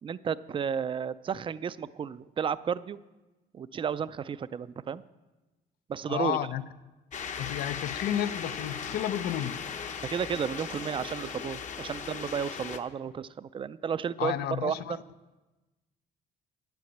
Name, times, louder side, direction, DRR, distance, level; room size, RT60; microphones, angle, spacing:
voice 1, 0.0-3.0 3.5-5.0 5.9-6.4 10.1-14.3 14.6-15.0, right 7 dB, 30° right, 0.4 m, -32 dB
voice 2, 6.1-6.6 7.4-9.6 14.2-15.0, left 11 dB, 70° left, 0.6 m, -31 dB
sound 1, 7.1-12.8, left 6 dB, 45° left, 1.0 m, -38 dB
10.5 x 8.8 x 7.9 m
cardioid pair, 110°, 17 cm